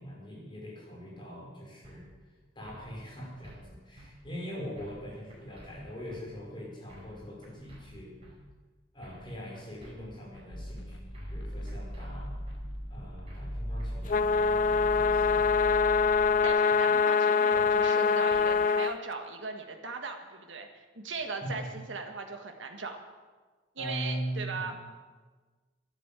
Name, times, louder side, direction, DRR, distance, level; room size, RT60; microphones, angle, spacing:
voice 1, 0.0-2.1 2.6-8.1 8.9-12.4 12.9-15.4 21.4-21.7 23.8-24.7, equal, 25° left, -4 dB, 5.5 m, -41 dB
sound 1, 1.8-2.0 2.6-2.9 3.2-3.6 4.0-4.1 4.8-5.0 5.3-5.7 6.1-6.2 6.9-7.2 7.4-7.8 8.2-8.3 9.0-9.3 9.5-9.9 10.3-10.5 11.1-11.4 11.7-12.1 12.5-12.6 13.3-13.5 13.8-14.2 14.6-14.7 15.4-15.7 15.9-16.3 16.7-16.8 17.5-17.8 18.0-18.4, equal, 30° right, 5.4 m, -52 dB
sound 2, 10.5-16.5, equal, 70° left, 1.6 m, -39 dB
sound 3, 14.1-18.9, left 5 dB, 45° left, 0.3 m, -24 dB
voice 2, 16.4-23.0 23.7-24.7, right 4 dB, 80° right, 4 dB, 1.7 m, -38 dB
11.5 x 10.5 x 9.1 m, 1.4 s
head